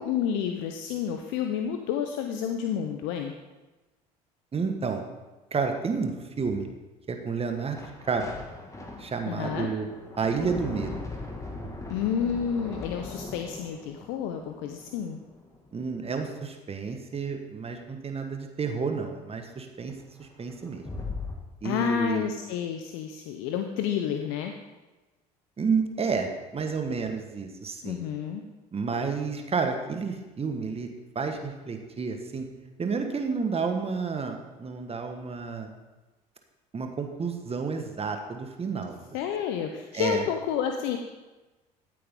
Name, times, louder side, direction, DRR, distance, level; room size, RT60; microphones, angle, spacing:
voice 1, 0.0-3.3 9.3-9.7 11.9-15.2 21.6-24.5 27.8-28.4 39.1-41.0, left 8 dB, 65° left, 5 dB, 0.9 m, -30 dB
voice 2, 4.5-5.0 5.5-6.1 6.4-6.7 7.1-8.2 9.0-9.9 10.2-10.9 15.7-20.8 21.6-22.2 25.6-28.0 28.7-30.9 31.1-32.5 32.8-35.7 36.7-39.0 39.9-40.2, right 5 dB, 30° right, 5 dB, 1.5 m, -30 dB
sound 1, 7.7-15.7 19.9-20.0 20.2-21.4, left 3 dB, 15° left, 2.0 m, -40 dB
14.5 x 8.6 x 3.7 m, 1.2 s
hypercardioid pair, 65°, 20 cm